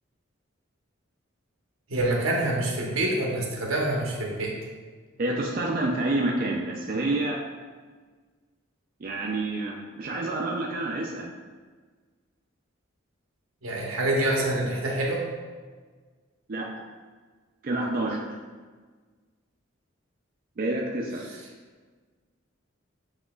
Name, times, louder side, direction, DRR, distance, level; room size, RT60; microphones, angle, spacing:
voice 1, 1.9-4.5 13.6-15.2, right 1 dB, 85° right, -2 dB, 1.0 m, -26 dB
voice 2, 5.2-7.4 9.0-11.3 16.5-16.8 17.6-18.3 20.6-21.2, right 2 dB, 45° right, -2 dB, 0.4 m, -28 dB
7.6 x 2.9 x 2.3 m, 1.5 s
head